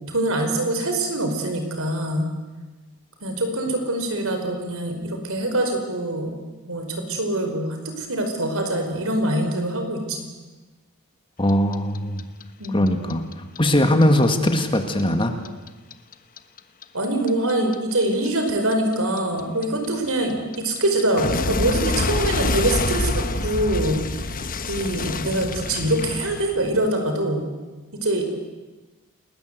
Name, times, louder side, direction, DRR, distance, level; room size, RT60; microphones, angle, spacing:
voice 1, 0.1-2.3 3.2-6.3 6.7-10.3 12.6-12.9 16.9-24.4 24.7-27.4 28.0-28.3, right 1 dB, 65° right, 5 dB, 5.0 m, -24 dB
voice 2, 11.4-12.2 12.7-13.2 13.6-15.4, left 1 dB, 25° left, 6 dB, 2.1 m, -20 dB
Clock, 11.5-14.5 14.8-17.7 18.0-26.9, left 3 dB, 40° left, 1.2 m, -26 dB
29.0 x 20.0 x 8.2 m, 1.2 s
head